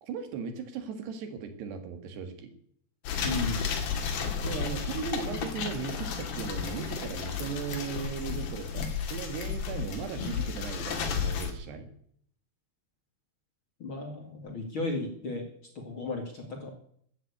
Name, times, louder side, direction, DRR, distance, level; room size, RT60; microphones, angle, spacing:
voice 1, 0.0-2.5 4.4-11.9, right 6 dB, 75° right, 7 dB, 3.8 m, -37 dB
sound 1, 3.0-11.5, left 6 dB, 65° left, 3.8 m, -33 dB
voice 2, 3.2-3.7 13.8-15.4 15.8-16.7, left 2 dB, 40° left, 2 dB, 2.3 m, -34 dB
14.0 x 9.7 x 8.6 m, 0.65 s
omnidirectional pair, 4.9 m